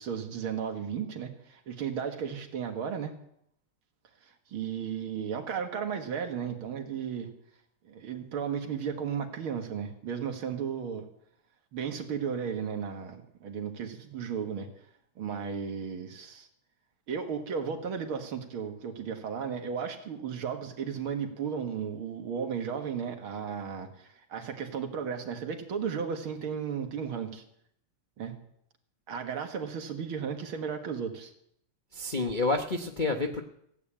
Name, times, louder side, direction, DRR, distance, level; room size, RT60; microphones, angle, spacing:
voice 1, 0.0-3.1 4.5-7.3 7.9-11.1 11.7-14.7 15.2-16.5 17.1-27.4 28.2-28.4 29.1-31.3 33.1-33.3, right 7 dB, 70° right, 5 dB, 2.4 m, -34 dB
voice 2, 31.9-33.4, left 3 dB, 45° left, 2 dB, 0.6 m, -29 dB
16.0 x 8.6 x 8.7 m, 0.71 s
omnidirectional pair, 2.4 m